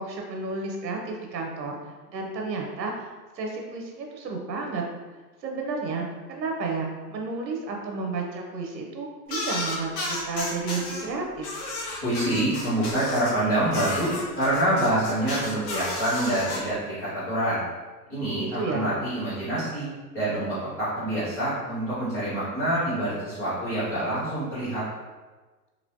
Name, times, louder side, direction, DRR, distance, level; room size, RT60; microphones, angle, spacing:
voice 1, 0.0-1.8 2.1-3.1 3.3-4.8 5.4-11.5 18.4-18.9, right 3 dB, 85° right, 1 dB, 0.8 m, -32 dB
sound 1, 9.3-11.0 11.4-13.3 13.7-16.6, left 2 dB, 40° left, 0.8 m, -32 dB
voice 2, 12.0-17.6 18.1-19.9 20.1-24.8, right 1 dB, 5° left, -12 dB, 0.3 m, -26 dB
3.1 x 2.8 x 2.6 m, 1.3 s
hypercardioid pair, 135°, 50 cm